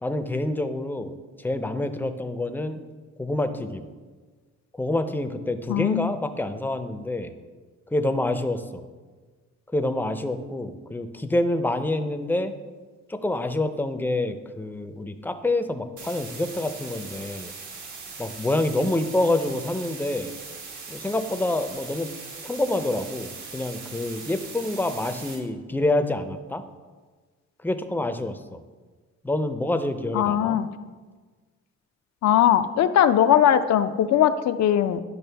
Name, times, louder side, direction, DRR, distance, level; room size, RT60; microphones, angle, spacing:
voice 1, 0.0-2.8 3.2-3.8 4.8-7.3 7.9-8.8 9.7-12.5 13.1-17.5 18.2-20.3 20.9-22.1 22.4-26.6 27.6-28.6 29.2-30.6, left 2 dB, 5° left, 8 dB, 0.5 m, -27 dB
voice 2, 5.7-6.1 30.1-30.7 32.2-35.0, left 10 dB, 65° left, 11 dB, 0.5 m, -20 dB
sound 1, 16.0-25.4, right 4 dB, 75° right, 1.4 m, -40 dB
11.0 x 5.2 x 3.4 m, 1.4 s
cardioid pair, 90°, 30 cm